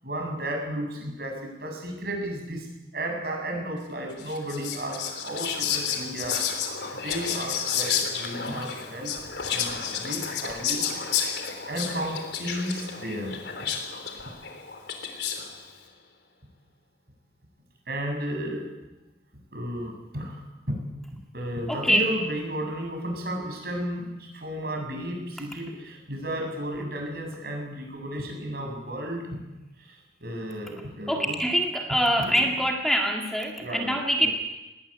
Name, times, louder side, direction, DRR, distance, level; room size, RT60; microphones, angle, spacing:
voice 1, 0.0-2.7 2.9-6.7 6.9-9.2 9.5-13.4 17.9-18.7 19.5-20.8 21.3-29.4 29.8-31.4 32.2-32.4 33.6-34.3, equal, 60° right, 2 dB, 7.9 m, -33 dB
Whispering, 4.2-15.6, left 7 dB, 75° left, 3.5 m, -31 dB
voice 2, 21.7-22.1 31.1-34.3, equal, ahead, 1 dB, 2.1 m, -24 dB
20.5 x 19.0 x 9.0 m, 1.0 s
head